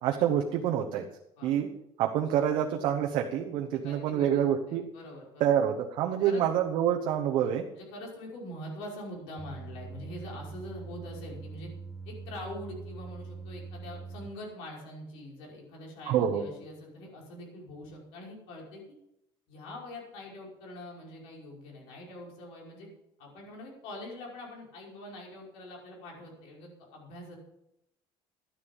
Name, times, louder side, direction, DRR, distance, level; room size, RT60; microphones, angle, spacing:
voice 1, 0.0-1.1 1.4-1.7 2.0-4.8 5.4-7.7 16.1-16.4, right 9 dB, 55° right, 2 dB, 1.0 m, -27 dB
voice 2, 3.8-4.4 4.7-5.5 6.2-6.5 7.7-11.7 12.0-18.8 19.5-22.9 23.2-27.4, left 1 dB, 70° left, -2 dB, 5.4 m, -44 dB
sound 1, 9.4-14.3, right 4 dB, 5° left, 0.8 m, -43 dB
12.5 x 10.0 x 5.4 m, 0.83 s
cardioid pair, 180°, 10 cm